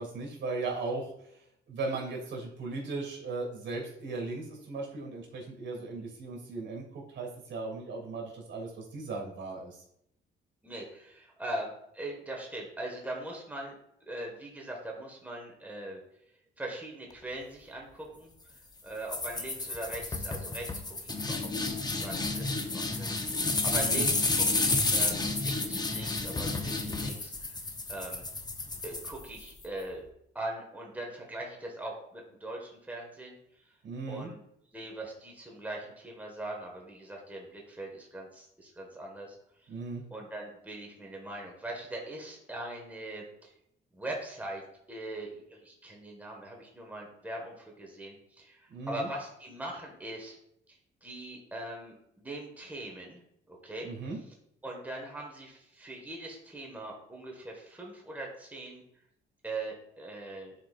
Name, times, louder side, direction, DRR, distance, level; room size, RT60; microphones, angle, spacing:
voice 1, 0.0-1.4 1.7-9.8 23.7-24.1 33.8-34.3 39.7-40.0 48.7-49.1 53.8-54.2, right 3 dB, 70° right, -1 dB, 2.8 m, -37 dB
voice 2, 10.6-13.7 14.1-16.0 16.6-18.3 18.8-21.5 22.0-23.1 23.6-27.6 27.9-28.3 28.8-30.0 30.4-33.4 34.1-34.4 34.7-39.4 40.1-43.5 43.9-44.6 44.9-50.4 51.0-53.2 53.5-53.9 54.6-58.8 59.4-60.5, right 1 dB, 10° right, -1 dB, 1.7 m, -41 dB
sound 1, 19.1-29.6, left 3 dB, 20° left, 0.9 m, -31 dB
10.0 x 4.8 x 2.5 m, 0.73 s
cardioid pair, 90°, 20 cm